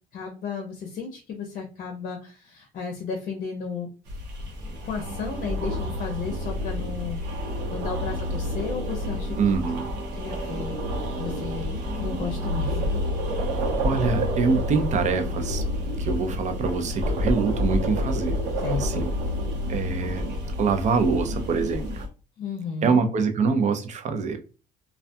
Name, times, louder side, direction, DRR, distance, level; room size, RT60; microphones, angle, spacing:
voice 1, 0.1-3.9 4.8-7.4 7.7-9.4 10.1-10.8 11.2-13.0 18.6-19.0 22.4-23.0, left 5 dB, 50° left, 0.6 m, -33 dB
sound 1, 4.1-22.1, left 1 dB, 80° right, 0.8 m, -29 dB
voice 2, 9.4-9.9 13.8-15.6 16.0-18.4 18.8-19.1 19.7-20.3 20.6-22.0 22.8-24.4, right 5 dB, 45° right, 0.5 m, -25 dB
2.3 x 2.2 x 2.6 m
cardioid pair, 110°, 17 cm